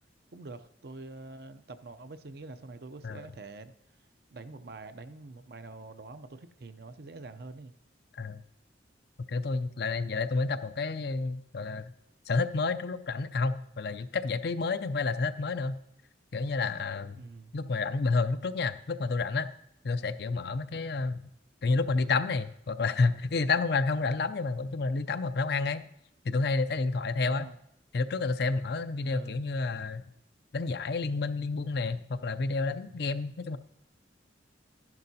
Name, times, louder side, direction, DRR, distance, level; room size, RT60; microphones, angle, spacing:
voice 1, 0.3-3.7 4.3-7.7 17.2-17.5 20.7-21.0 27.3-27.6 29.1-29.4 33.5-33.6, right 3 dB, 60° right, 0.6 m, -45 dB
voice 2, 9.3-11.9 12.3-15.8 16.3-17.2 17.5-19.5 19.8-21.2 21.6-25.8 26.2-27.5 27.9-30.0 30.5-33.6, left 3 dB, 60° left, 0.5 m, -30 dB
12.5 x 10.5 x 2.8 m
head